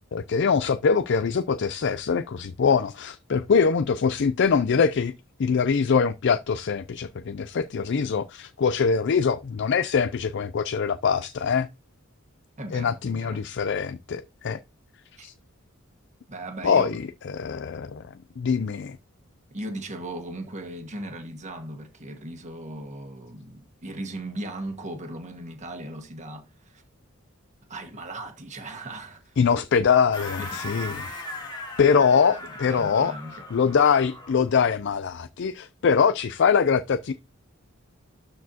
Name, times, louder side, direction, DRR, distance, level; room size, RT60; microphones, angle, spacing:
voice 1, 0.1-5.1 5.4-11.7 12.7-14.6 15.2-15.3 16.6-17.0 17.3-18.0 18.4-19.0 29.4-31.1 31.8-33.1 33.5-37.1, left 6 dB, 55° left, 0.4 m, -23 dB
voice 2, 12.6-13.5 15.2-15.3 16.3-16.9 19.5-26.8 27.7-29.4 30.4-30.6 31.8-33.5, right 1 dB, 35° right, 1.6 m, -38 dB
sound 1, 30.1-34.5, left 2 dB, 20° left, 2.8 m, -38 dB
12.5 x 4.5 x 2.8 m
head